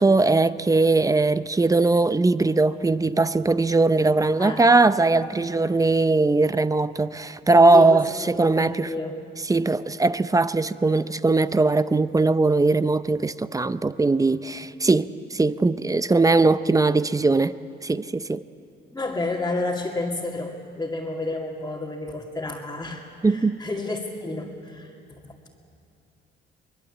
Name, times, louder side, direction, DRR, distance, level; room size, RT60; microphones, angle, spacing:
voice 1, 0.0-8.9 9.5-17.5 17.8-18.4 23.2-23.6, right 3 dB, 15° right, 0.6 m, -20 dB
voice 2, 4.4-4.8 5.2-5.3 7.7-8.1 8.6-9.2 18.9-24.9 25.2-25.3, left 2 dB, 15° left, 2.4 m, -30 dB
23.5 x 20.5 x 8.4 m
cardioid pair, 90°, 20 cm